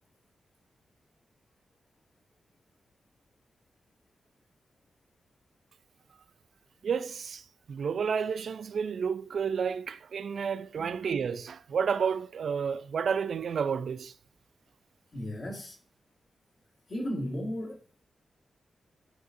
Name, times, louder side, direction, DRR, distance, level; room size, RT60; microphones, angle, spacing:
voice 1, 6.8-7.4 7.7-14.1, right 6 dB, 65° right, 0.4 m, -31 dB
voice 2, 15.1-15.8 16.9-17.8, equal, 45° left, 1.7 m, -35 dB
11.0 x 4.0 x 2.6 m
wide cardioid pair, 165°, 0 cm